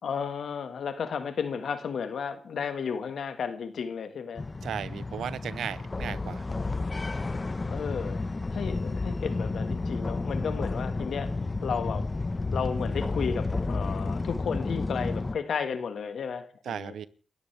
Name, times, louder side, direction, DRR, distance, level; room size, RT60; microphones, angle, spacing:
voice 1, 0.0-4.4 7.6-12.1 12.5-16.9, left 6 dB, 80° left, 1.7 m, -33 dB
sound 1, 4.4-15.4, left 3 dB, 40° left, 1.2 m, -31 dB
voice 2, 4.6-6.5 16.7-17.1, right 8 dB, 90° right, 0.8 m, -35 dB
29.5 x 14.5 x 3.4 m
cardioid pair, 45°, 0 cm